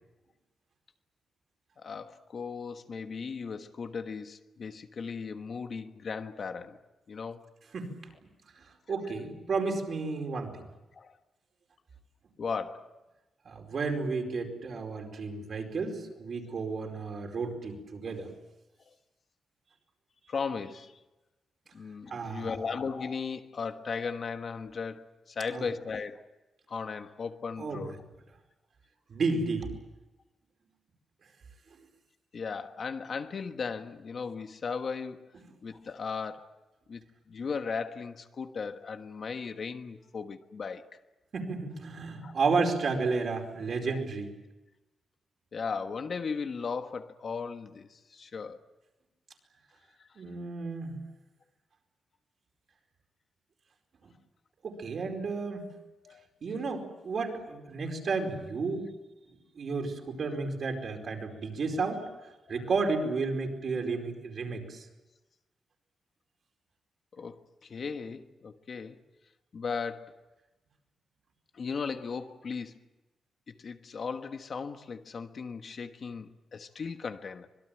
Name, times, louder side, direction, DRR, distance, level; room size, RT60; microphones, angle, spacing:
voice 1, 1.8-6.8 7.1-7.4 10.9-11.2 12.4-13.0 18.9-19.0 20.3-21.0 21.7-26.2 26.7-28.0 32.3-35.3 35.6-36.5 36.9-41.0 42.2-42.4 43.9-44.0 45.5-48.6 50.0-50.1 56.0-56.3 67.1-69.0 69.5-70.1 71.5-72.8 73.5-77.5, left 5 dB, 45° left, 1.3 m, -37 dB
voice 2, 8.6-10.6 13.4-18.3 22.1-22.5 25.5-25.7 27.6-27.8 29.1-29.7 41.3-44.3 50.1-50.9 54.6-55.7 56.4-58.9 59.5-62.1 62.5-64.9, right 4 dB, 50° right, 4.8 m, -32 dB
25.0 x 22.0 x 9.0 m
wide cardioid pair, 155°, 0 cm